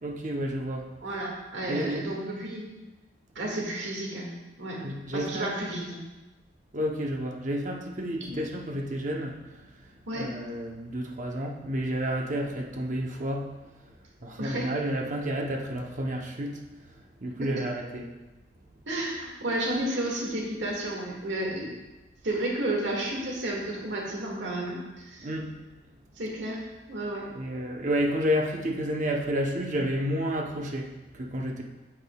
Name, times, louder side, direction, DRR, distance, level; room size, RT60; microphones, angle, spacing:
voice 1, 0.0-0.9 1.7-2.1 4.8-5.5 6.7-9.3 10.1-13.5 14.2-16.6 17.2-18.1 25.2-25.5 27.3-31.6, equal, 45° right, 1 dB, 0.8 m, -30 dB
voice 2, 1.0-2.7 3.4-4.3 4.6-4.8 5.1-6.0 8.2-8.4 10.1-10.3 14.4-14.7 17.4-17.6 18.9-21.7 22.2-25.3 26.2-26.6 26.9-27.3, right 1 dB, 75° right, -2 dB, 1.9 m, -32 dB
8.7 x 8.1 x 2.3 m, 1.1 s
head